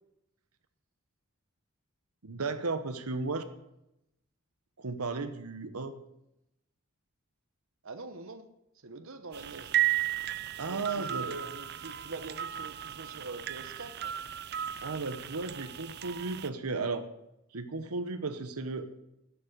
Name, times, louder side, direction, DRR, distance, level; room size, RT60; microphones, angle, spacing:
voice 1, 2.2-3.4 4.8-6.0 10.6-11.3 14.8-17.1 17.5-18.9, right 3 dB, 90° right, 9 dB, 1.0 m, -34 dB
voice 2, 7.8-8.5 8.7-9.8 10.7-14.2, right 3 dB, 65° right, 8 dB, 1.0 m, -44 dB
sound 1, 9.3-16.5, right 12 dB, 45° right, 0.5 m, -35 dB
11.5 x 7.2 x 8.7 m, 0.86 s
head